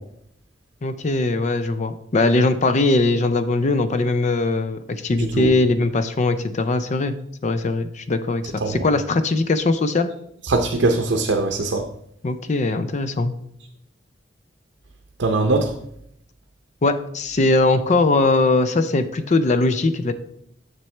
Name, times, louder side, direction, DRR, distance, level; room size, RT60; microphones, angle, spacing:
voice 1, 0.8-7.1 7.4-10.1 12.2-13.3 16.8-20.1, left 2 dB, 40° left, 11 dB, 0.5 m, -20 dB
voice 2, 10.5-11.8 15.2-15.7, right 2 dB, 85° right, 4 dB, 0.7 m, -21 dB
7.2 x 6.7 x 3.3 m, 0.71 s
head